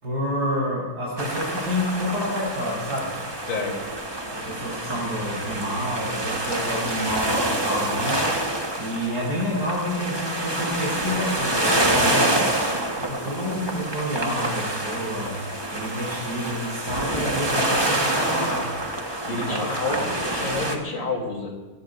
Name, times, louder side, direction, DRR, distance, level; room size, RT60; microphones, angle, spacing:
voice 1, 0.0-3.2 4.3-8.4 8.8-12.4 12.9-15.4 15.7-18.7 19.5-20.1, equal, 55° right, -8 dB, 5.6 m, -29 dB
sound 1, 1.2-20.8, right 1 dB, 15° right, 1.2 m, -27 dB
voice 2, 19.2-21.5, left 3 dB, 70° left, 0 dB, 4.0 m, -29 dB
23.5 x 18.0 x 2.6 m, 1.2 s
omnidirectional pair, 2.1 m